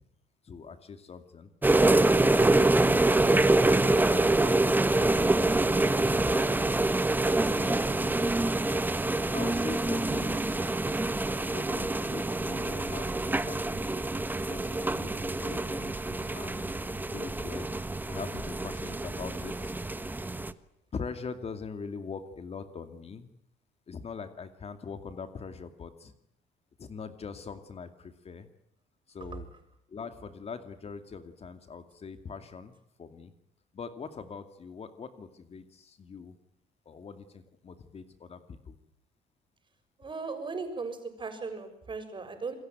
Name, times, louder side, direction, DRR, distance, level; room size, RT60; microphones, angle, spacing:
voice 1, 0.4-1.5 2.1-6.7 7.5-8.2 9.3-10.5 11.5-13.9 14.5-16.8 17.1-17.7 18.0-19.8 20.9-23.3 23.9-26.1 26.8-28.5 29.1-29.5 29.9-33.3 33.7-36.4 36.9-38.8, left 5 dB, 35° left, 8 dB, 2.4 m, -42 dB
sound 1, 1.6-20.5, right 2 dB, 10° right, 1.3 m, -26 dB
voice 2, 40.0-42.6, right 4 dB, 30° right, 8 dB, 6.9 m, -37 dB
28.5 x 22.5 x 9.3 m, 0.75 s
cardioid pair, 110°, 17 cm